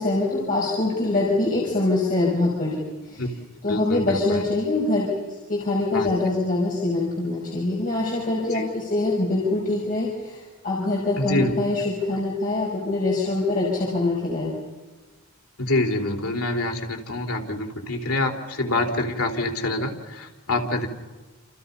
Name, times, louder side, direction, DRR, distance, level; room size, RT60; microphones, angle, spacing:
voice 1, 0.0-2.8 3.1-3.2 3.6-5.2 5.5-10.1 10.6-14.5, left 2 dB, 40° left, -4 dB, 5.8 m, -24 dB
voice 2, 3.7-4.4 5.9-6.1 8.5-8.7 11.2-11.6 15.6-20.9, left 2 dB, 80° left, 3 dB, 4.1 m, -26 dB
29.0 x 29.0 x 5.6 m, 1.2 s
head